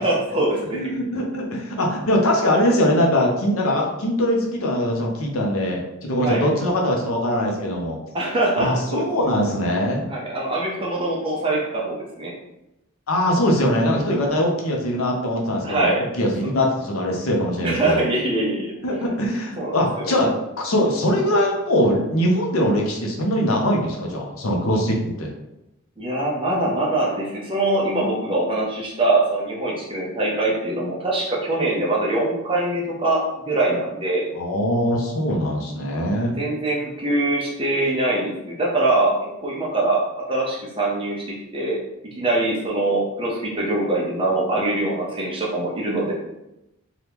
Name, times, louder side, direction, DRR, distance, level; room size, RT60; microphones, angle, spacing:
voice 1, 0.0-0.9 6.2-6.4 8.1-9.1 10.1-12.3 15.6-16.0 17.6-18.7 19.6-20.1 26.0-34.2 36.4-40.0 40.3-41.8 42.2-46.1, right 2 dB, 25° right, -3 dB, 0.6 m, -23 dB
voice 2, 0.7-8.0 8.6-10.0 13.1-18.0 18.8-25.3 34.3-36.4, equal, 75° left, 0 dB, 0.7 m, -22 dB
2.8 x 2.4 x 3.4 m, 0.90 s
head